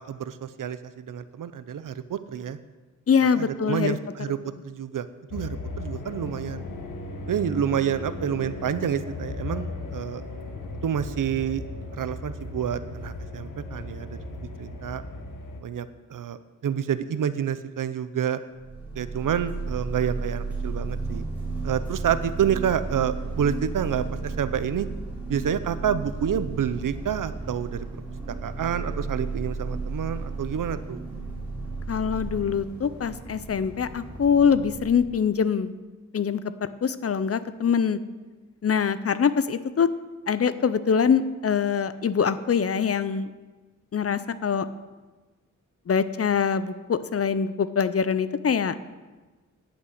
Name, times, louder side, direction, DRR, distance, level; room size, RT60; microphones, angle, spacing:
voice 1, 0.0-2.6 3.4-5.1 5.3-6.7 7.3-10.2 10.8-11.6 11.9-14.2 14.6-15.0 15.6-18.4 18.9-21.2 21.6-24.9 25.3-27.9 28.3-31.0, right 8 dB, 85° right, 13 dB, 0.7 m, -28 dB
voice 2, 3.1-4.0 31.9-35.7 36.1-36.4 36.8-38.0 38.6-39.9 40.3-43.3 43.9-44.7 45.9-48.8, left 6 dB, 50° left, 14 dB, 0.6 m, -24 dB
sound 1, 5.3-15.6, left 2 dB, 90° left, 1.5 m, -36 dB
sound 2, 18.6-35.1, right 3 dB, 5° right, 4.3 m, -34 dB
10.0 x 8.5 x 7.9 m, 1.3 s
wide cardioid pair, 125°, 31 cm